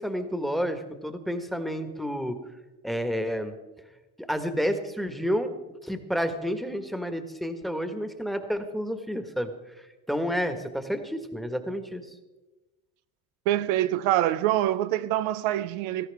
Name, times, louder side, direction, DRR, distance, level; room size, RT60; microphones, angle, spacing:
voice 1, 0.0-2.4 2.8-3.5 4.2-5.5 5.8-12.0, equal, ahead, 1.5 m, -30 dB
voice 2, 13.5-16.1, right 13 dB, 75° right, 0.6 m, -25 dB
17.0 x 14.0 x 3.6 m
hypercardioid pair, 70°, 50 cm